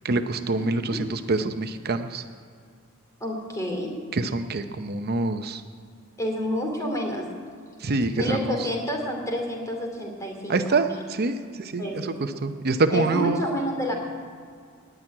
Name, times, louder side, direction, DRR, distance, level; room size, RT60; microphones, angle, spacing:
voice 1, 0.0-2.2 4.1-5.6 7.8-8.7 10.5-13.4, right 3 dB, 50° right, 8 dB, 0.7 m, -26 dB
voice 2, 0.6-1.0 3.2-4.0 6.2-7.3 8.2-10.6 10.9-11.0 11.8-12.1 12.9-13.9, equal, 15° left, 1 dB, 2.7 m, -29 dB
18.0 x 6.1 x 9.8 m, 2.2 s
head